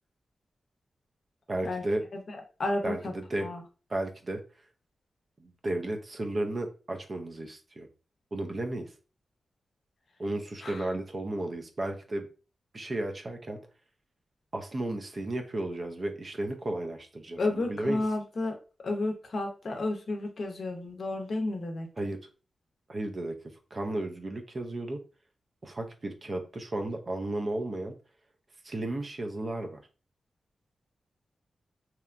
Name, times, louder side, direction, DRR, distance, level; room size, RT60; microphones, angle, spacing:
voice 1, 1.5-2.0 2.8-3.5 3.9-4.4 5.4-7.9 8.3-8.9 10.2-12.3 12.7-13.6 14.5-18.0 22.0-22.2 22.9-23.3 23.7-25.0 25.6-27.9 28.6-29.8, right 1 dB, 35° right, 4 dB, 0.4 m, -33 dB
voice 2, 2.1-3.1 3.4-3.6 10.6-10.9 17.4-18.6 18.8-21.9, left 2 dB, 55° left, 4 dB, 0.5 m, -32 dB
2.8 x 2.2 x 2.4 m, 0.35 s
wide cardioid pair, 135°, 0 cm